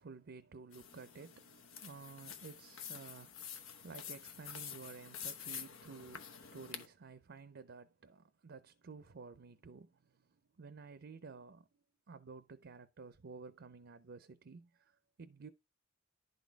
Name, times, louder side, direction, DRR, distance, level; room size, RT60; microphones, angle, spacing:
voice 1, 0.0-11.7 12.1-15.5, right 4 dB, 55° right, 0.5 m, -53 dB
sound 1, 0.7-6.9, left 8 dB, 90° left, 1.0 m, -48 dB
11.0 x 4.1 x 4.6 m
head